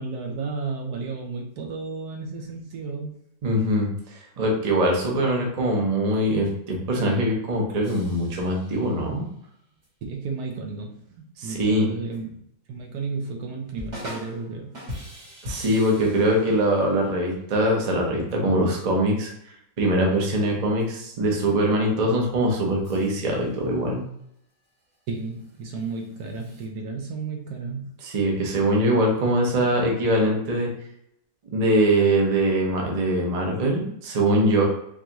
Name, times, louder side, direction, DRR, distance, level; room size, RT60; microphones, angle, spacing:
voice 1, 0.0-3.1 10.0-12.3 12.7-14.8 25.1-27.9, right 4 dB, 70° right, 2 dB, 1.1 m, -33 dB
voice 2, 3.4-9.2 11.4-11.9 15.4-19.3 19.8-24.1 28.0-30.7 31.5-34.6, right 1 dB, 90° right, 0 dB, 0.3 m, -22 dB
sound 1, 7.8-9.2 9.8-9.9 12.1-12.2 13.8-14.5 14.7-17.2 18.3-18.4 20.8-20.9 22.7-23.6 24.6-26.7, left 1 dB, 50° right, 1.8 m, -41 dB
4.5 x 2.5 x 2.9 m, 0.75 s
omnidirectional pair, 2.0 m